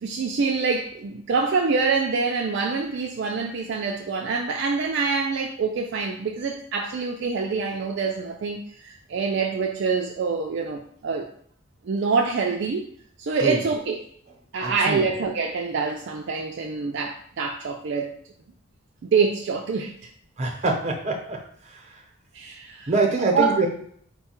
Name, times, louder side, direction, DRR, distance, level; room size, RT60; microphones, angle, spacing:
voice 1, 0.0-11.3 11.8-12.9 13.2-14.1 14.5-18.1 19.0-19.9 22.3-22.9 23.3-23.6, right 4 dB, 55° right, 1 dB, 0.4 m, -25 dB
voice 2, 14.6-15.0 20.4-21.4 21.7-21.8 22.9-23.7, right 3 dB, 30° right, 1 dB, 0.8 m, -24 dB
4.6 x 2.3 x 4.3 m, 0.63 s
head